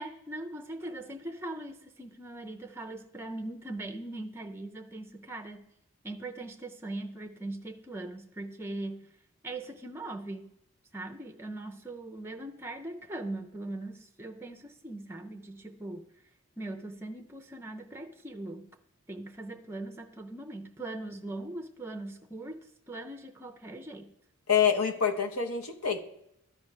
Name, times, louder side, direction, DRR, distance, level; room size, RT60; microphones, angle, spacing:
voice 1, 0.0-5.7 6.0-9.1 9.4-10.5 10.9-16.1 16.6-18.8 19.1-24.1, right 2 dB, 10° right, 4 dB, 0.5 m, -40 dB
voice 2, 24.5-26.0, left 7 dB, 75° left, 4 dB, 1.0 m, -26 dB
13.0 x 4.8 x 3.2 m, 0.81 s
head